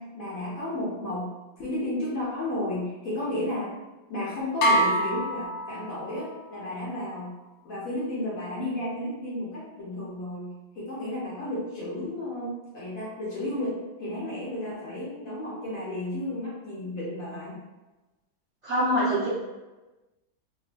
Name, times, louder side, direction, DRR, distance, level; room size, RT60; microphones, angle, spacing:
voice 1, 0.0-3.8 4.1-7.3 7.6-17.6, left 1 dB, 55° left, -7 dB, 1.2 m, -33 dB
sound 1, 4.6-6.4, right 1 dB, 85° left, 0.7 m, -25 dB
voice 2, 18.6-19.3, equal, 55° right, -9 dB, 0.8 m, -24 dB
3.7 x 2.6 x 2.5 m, 1.1 s
omnidirectional pair, 2.0 m